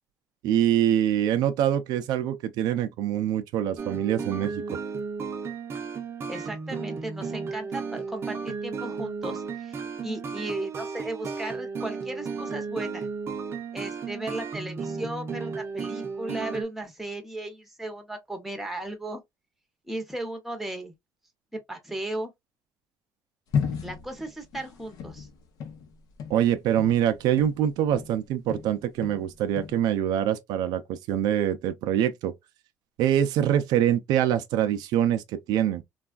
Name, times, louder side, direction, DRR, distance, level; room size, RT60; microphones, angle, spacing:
voice 1, 0.4-4.8 26.3-32.3 33.0-35.8, right 10 dB, 80° right, 0.4 m, -24 dB
sound 1, 3.8-16.6, right 5 dB, 35° right, 0.6 m, -34 dB
voice 2, 6.3-13.1 13.7-19.2 19.9-20.9 21.5-22.3 23.8-25.3, right 1 dB, 5° right, 0.8 m, -36 dB
sound 2, 23.5-28.2 28.5-29.8, left 6 dB, 65° left, 0.7 m, -34 dB
3.3 x 2.3 x 2.3 m
cardioid pair, 140°, 7 cm